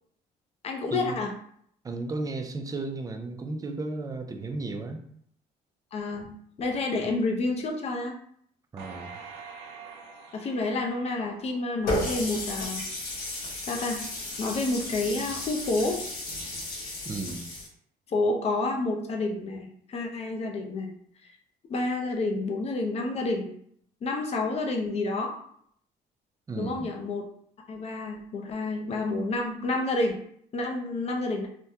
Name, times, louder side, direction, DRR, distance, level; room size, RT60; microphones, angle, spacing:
voice 1, 0.6-1.3 5.9-6.3 6.6-8.1 10.3-12.9 13.6-14.0 14.4-16.0 18.1-20.9 21.2-21.3 21.7-23.5 24.0-25.4 26.6-27.3 27.7-30.2 30.5-31.5, left 2 dB, 40° left, 1 dB, 0.6 m, -29 dB
voice 2, 1.8-5.0 8.7-9.1 17.0-17.5 26.5-26.9, right 3 dB, 20° right, 5 dB, 0.4 m, -34 dB
sound 1, 8.8-12.2 12.7-12.8, right 5 dB, 90° right, 0.5 m, -46 dB
Water tap faucet, 11.9-17.7, left 1 dB, 75° left, 1.3 m, -34 dB
3.4 x 2.2 x 2.7 m, 0.66 s
cardioid pair, 110°, 17 cm